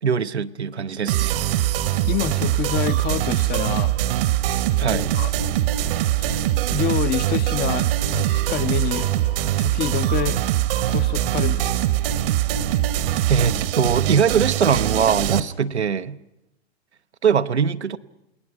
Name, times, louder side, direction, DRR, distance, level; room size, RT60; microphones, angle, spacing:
voice 1, 0.0-1.4 4.8-5.1 13.3-16.2 17.2-18.0, right 7 dB, 90° right, 0.8 m, -21 dB
sound 1, 1.1-15.4, right 13 dB, 60° right, 1.1 m, -22 dB
voice 2, 2.1-3.9 4.8-5.3 6.2-6.3 6.7-9.1 9.6-10.5 10.9-11.7, left 12 dB, 30° left, 0.7 m, -27 dB
29.0 x 19.0 x 6.0 m
figure-of-eight pair, 95°, 32 cm